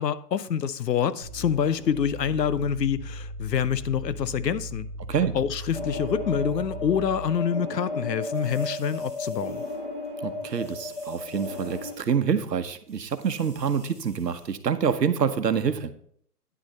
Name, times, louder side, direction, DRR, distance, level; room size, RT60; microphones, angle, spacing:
voice 1, 0.0-4.9 5.3-9.6, left 8 dB, 85° left, 0.8 m, -26 dB
sound 1, 1.2-7.4, equal, 20° right, 0.9 m, -38 dB
sound 2, 5.7-12.0, left 2 dB, 35° left, 0.6 m, -34 dB
sound 3, 8.3-9.8 10.0-10.1 10.4-12.2 12.4-12.5 12.8-14.6 14.8-14.9, right 2 dB, 10° left, 1.7 m, -54 dB
voice 2, 10.2-15.9, right 7 dB, 85° right, 1.1 m, -26 dB
9.7 x 6.5 x 4.2 m
hypercardioid pair, 175°, 48 cm